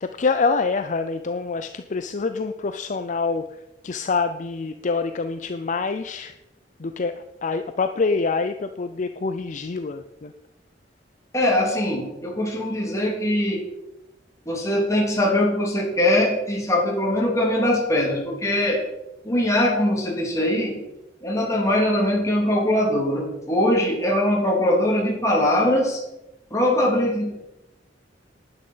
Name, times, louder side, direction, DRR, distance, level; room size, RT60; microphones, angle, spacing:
voice 1, 0.0-3.5 3.8-6.3 6.8-10.3, left 4 dB, 45° left, 9 dB, 0.5 m, -26 dB
voice 2, 11.3-13.7 14.4-18.8 19.2-20.8 21.2-26.0 26.5-27.3, left 1 dB, 15° left, -2 dB, 3.1 m, -21 dB
10.0 x 9.7 x 5.6 m, 0.93 s
head